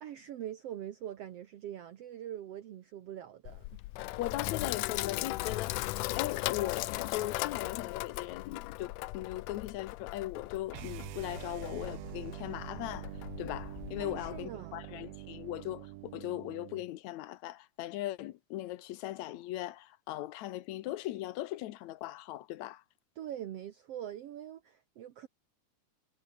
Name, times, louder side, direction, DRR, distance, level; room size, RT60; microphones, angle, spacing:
voice 1, 0.0-3.8 14.0-14.8 23.2-25.3, right 11 dB, 60° right, 1.9 m, -43 dB
Sink (filling or washing), 3.5-14.5, left 19 dB, 90° left, 2.2 m, -38 dB
voice 2, 4.2-13.1 13.4-22.8, left 15 dB, 75° left, 2.1 m, -39 dB
sound 1, 10.7-16.9, right 16 dB, 75° right, 1.5 m, -45 dB
omnidirectional pair, 3.5 m